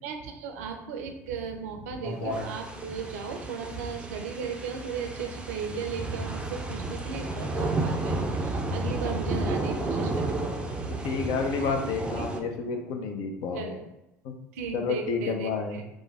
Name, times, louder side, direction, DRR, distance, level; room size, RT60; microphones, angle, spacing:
voice 1, 0.0-10.4 10.7-10.9 12.2-12.3 13.5-13.8 14.5-15.8, right 6 dB, 70° right, 5 dB, 0.4 m, -36 dB
sound 1, 2.0-8.7, left 1 dB, 75° left, 1.0 m, -43 dB
sound 2, 2.3-12.4, right 2 dB, 10° right, 0.4 m, -32 dB
voice 2, 11.0-13.8 14.2-14.3 14.7-15.8, left 5 dB, 55° left, 4 dB, 0.5 m, -30 dB
3.2 x 2.1 x 3.2 m, 0.92 s
figure-of-eight pair, 65°, 8 cm